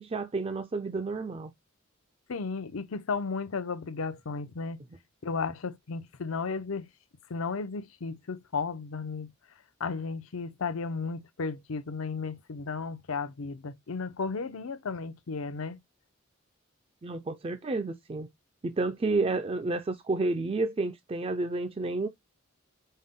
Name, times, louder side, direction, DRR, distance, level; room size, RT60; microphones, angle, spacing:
voice 1, 0.0-1.5 17.0-18.3 18.6-22.1, right 3 dB, 25° right, 0.4 m, -30 dB
voice 2, 2.3-4.8 5.2-6.9 7.3-9.3 9.8-15.8, left 4 dB, 75° left, 0.6 m, -34 dB
5.3 x 2.1 x 3.6 m
head